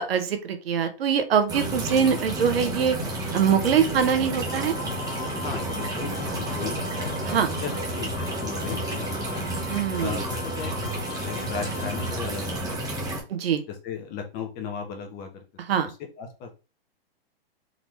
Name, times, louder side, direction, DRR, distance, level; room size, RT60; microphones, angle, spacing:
voice 1, 0.0-3.0 3.3-4.7 7.2-7.5 9.7-10.2 13.3-13.6 15.7-15.9, right 7 dB, 75° right, 9 dB, 1.0 m, -23 dB
sound 1, 1.5-13.2, right 1 dB, 10° right, 1.2 m, -31 dB
sound 2, 4.5-12.2, left 5 dB, 85° left, 0.9 m, -41 dB
voice 2, 5.3-7.4 7.6-9.6 10.0-12.9 13.8-15.4 16.2-16.5, left 6 dB, 30° left, 4 dB, 1.1 m, -36 dB
4.0 x 3.2 x 3.1 m, 0.31 s
hypercardioid pair, 135°, 30 cm